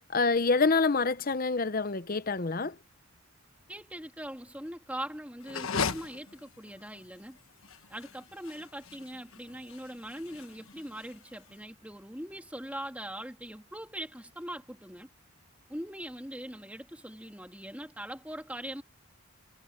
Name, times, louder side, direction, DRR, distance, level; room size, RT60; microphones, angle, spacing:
voice 1, 0.1-2.7, left 4 dB, 40° left, 0.8 m, -26 dB
voice 2, 3.7-7.4 7.9-15.1 15.7-18.8, right 1 dB, 5° right, 3.0 m, -41 dB
sound 1, 5.4-11.5, left 5 dB, 70° left, 1.3 m, -38 dB
head